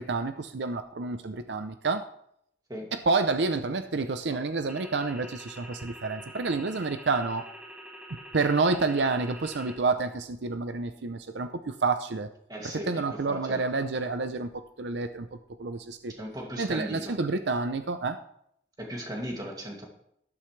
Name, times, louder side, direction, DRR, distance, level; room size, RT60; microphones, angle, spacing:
voice 1, 0.0-2.0 2.9-7.4 8.3-12.3 12.7-14.5 14.8-16.1 16.6-18.2, right 3 dB, 75° right, 9 dB, 0.7 m, -29 dB
sound 1, 4.7-9.8, right 1 dB, 5° right, 1.5 m, -46 dB
voice 2, 12.5-13.6 16.2-17.2 18.8-19.8, equal, 20° right, 0 dB, 2.4 m, -37 dB
13.0 x 12.0 x 3.3 m, 0.72 s
head